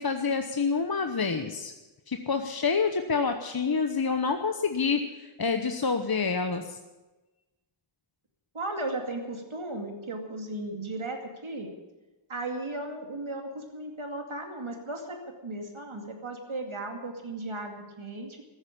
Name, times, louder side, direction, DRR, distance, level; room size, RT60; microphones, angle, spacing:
voice 1, 0.0-1.7 2.1-6.8, left 5 dB, 50° left, 6 dB, 1.0 m, -28 dB
voice 2, 8.5-11.7 12.3-18.4, right 2 dB, 80° right, 3 dB, 2.4 m, -36 dB
14.5 x 8.9 x 10.0 m, 1.1 s
wide cardioid pair, 40°, 48 cm